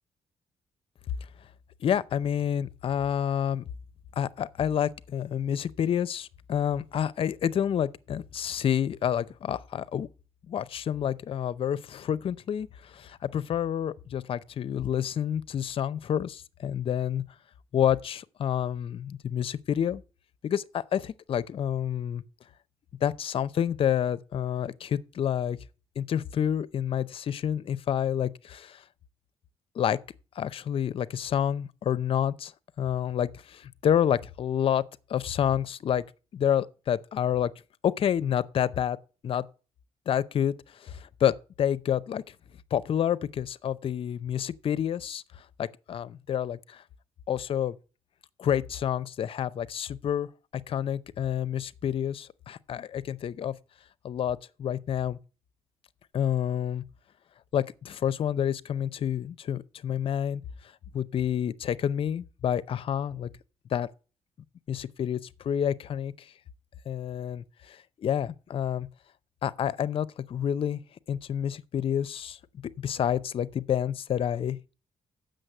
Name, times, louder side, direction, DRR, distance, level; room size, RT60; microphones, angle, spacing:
voice 1, 1.8-3.6 4.2-10.1 10.5-17.2 17.7-20.0 20.4-22.2 23.0-25.6 26.0-28.8 29.8-30.0 30.4-32.5 32.8-34.8 35.1-36.0 36.3-37.5 37.8-39.0 39.2-39.4 40.1-40.5 40.8-42.2 42.7-45.2 45.6-46.8 47.3-47.7 48.4-50.3 50.7-53.5 54.0-55.2 56.1-56.8 57.5-60.4 60.9-63.3 63.7-63.9 64.7-65.2 65.4-66.3 66.9-68.9 69.4-70.8 71.1-72.4 72.8-74.6, left 9 dB, 55° left, 0.6 m, -28 dB
7.8 x 6.5 x 6.6 m
cardioid pair, 105°, 11 cm